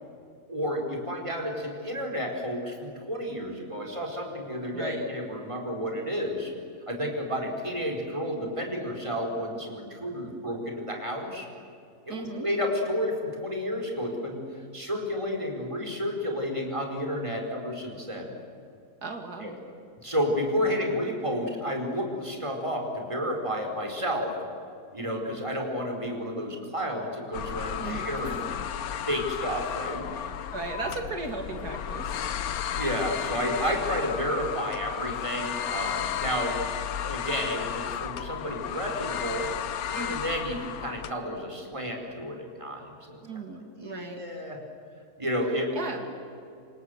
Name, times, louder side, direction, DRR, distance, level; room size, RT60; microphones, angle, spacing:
voice 1, 0.5-6.5 6.9-11.5 12.1-14.4 14.7-18.3 19.4-19.5 20.0-24.3 24.9-28.5 29.1-30.0 32.7-36.6 37.0-39.5 39.9-43.2 43.8-44.6 45.2-45.8, equal, 20° right, 2 dB, 4.8 m, -31 dB
voice 2, 4.7-5.1 12.1-12.5 19.0-19.6 20.6-21.0 27.8-28.4 30.1-32.2 33.5-33.7 43.2-44.2 45.7-46.0, right 3 dB, 80° right, 4 dB, 2.8 m, -37 dB
sound 1, 27.3-41.1, left 9 dB, 70° left, 1.3 m, -33 dB
27.5 x 26.5 x 8.1 m, 2.6 s
omnidirectional pair, 1.7 m